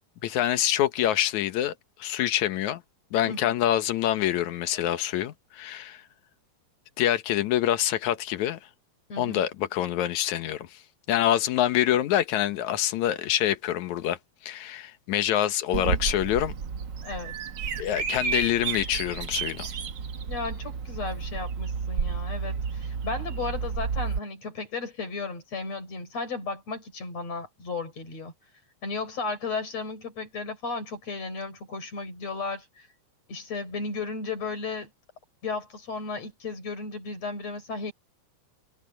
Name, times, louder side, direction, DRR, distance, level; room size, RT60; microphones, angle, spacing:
voice 1, 0.2-1.7 2.0-2.8 3.1-6.0 7.0-8.6 9.2-10.8 11.1-14.2 14.4-16.5 17.8-19.7, left 12 dB, 75° left, 2.4 m, -26 dB
voice 2, 9.1-9.4 17.0-17.3 20.3-28.3 28.8-32.9 33.3-34.9 35.4-37.9, left 4 dB, 55° left, 6.8 m, -34 dB
Bird vocalization bird call bird song, 15.7-24.2, right 6 dB, 50° right, 1.5 m, -31 dB
omnidirectional pair, 3.4 m